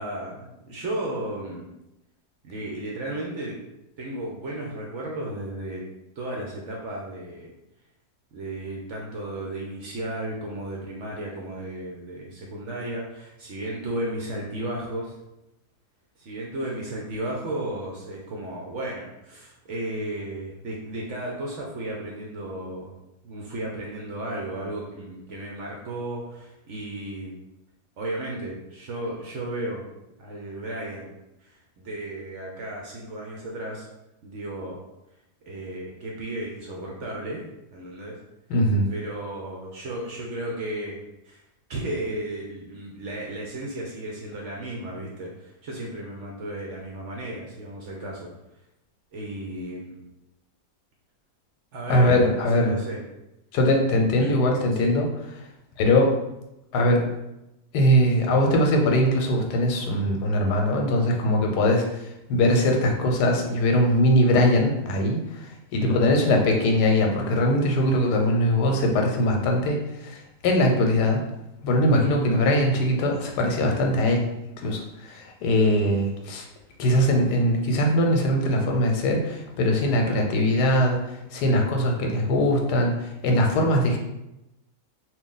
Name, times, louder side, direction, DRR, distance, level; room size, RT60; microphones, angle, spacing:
voice 1, 0.0-1.7 2.4-3.6 4.0-5.8 6.2-7.5 8.3-15.1 16.2-22.9 23.2-27.3 28.0-29.8 30.2-31.1 31.4-33.9 34.2-34.8 35.5-37.4 37.7-38.2 38.9-41.0 41.3-41.4 41.7-48.3 49.1-50.0 51.7-53.0 54.2-54.4 54.7-54.9 65.8-66.1 72.0-72.2 80.0-80.2, right 1 dB, 65° right, -2 dB, 0.8 m, -34 dB
voice 2, 38.5-38.9 51.9-52.8 53.5-55.1 55.4-55.5 55.8-56.1 56.7-57.1 57.7-71.2 71.6-74.3 74.6-76.5 76.8-84.0, left 1 dB, 90° left, 2 dB, 1.2 m, -21 dB
2.9 x 2.5 x 3.7 m, 0.89 s
omnidirectional pair, 1.7 m